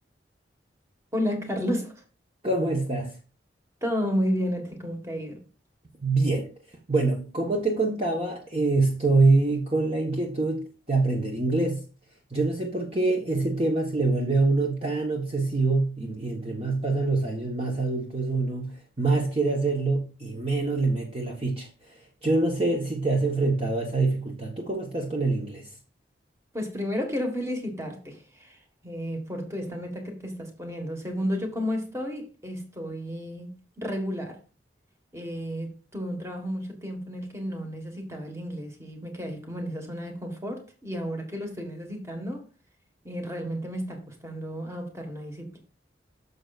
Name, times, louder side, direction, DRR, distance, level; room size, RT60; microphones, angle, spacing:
voice 1, 1.1-2.0 3.8-5.4 26.5-34.4 35.1-42.5 43.0-45.6, equal, 15° right, 1.5 m, -32 dB
voice 2, 2.4-3.1 6.0-6.5 6.9-11.8 12.3-25.7, right 3 dB, 30° right, 1.1 m, -25 dB
9.6 x 6.7 x 2.4 m
head